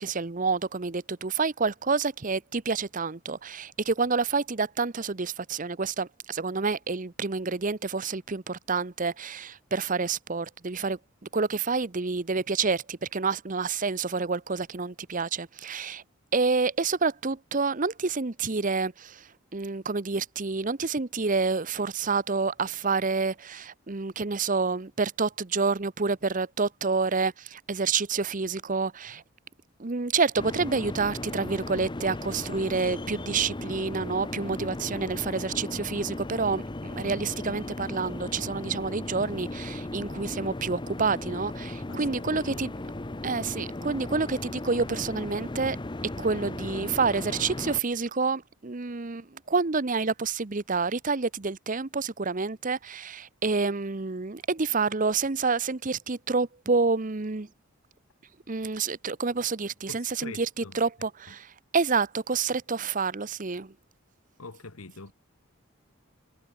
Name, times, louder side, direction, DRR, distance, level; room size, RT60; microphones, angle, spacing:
voice 1, 0.0-11.0 11.3-16.0 16.3-29.2 29.8-42.7 43.2-45.8 46.2-57.5 58.5-63.7, right 4 dB, 40° right, 0.8 m, -28 dB
sound 1, 30.4-47.8, left 2 dB, 20° left, 0.7 m, -36 dB
voice 2, 41.9-42.6 59.9-60.8 61.3-61.4 64.4-65.1, left 3 dB, 90° left, 1.5 m, -45 dB
head